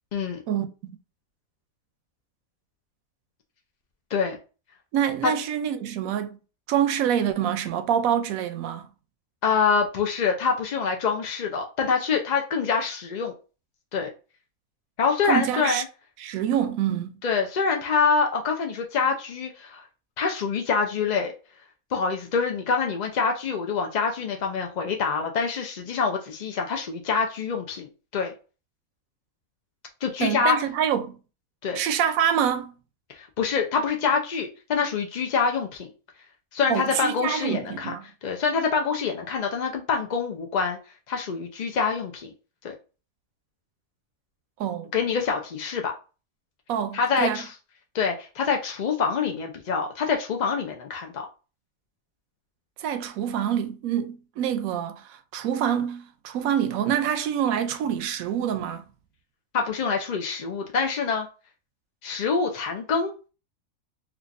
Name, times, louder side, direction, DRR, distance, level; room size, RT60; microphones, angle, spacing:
voice 1, 4.9-6.4 6.7-8.9 15.2-15.8 16.2-17.2 30.2-31.2 31.7-32.7 36.7-38.1 44.6-44.9 46.7-47.4 52.8-58.9, right 9 dB, 85° right, 1.0 m, -26 dB
voice 2, 9.4-13.3 13.9-14.1 15.0-15.8 17.2-19.8 20.2-21.3 21.9-28.3 30.0-30.6 31.6-31.8 33.1-35.9 36.5-37.9 38.2-40.8 41.1-42.3 42.6-42.7 44.9-45.9 46.9-47.5 47.9-51.3 59.5-61.3 62.0-63.1, left 5 dB, 70° left, 0.4 m, -25 dB
4.5 x 2.4 x 2.5 m
omnidirectional pair, 1.4 m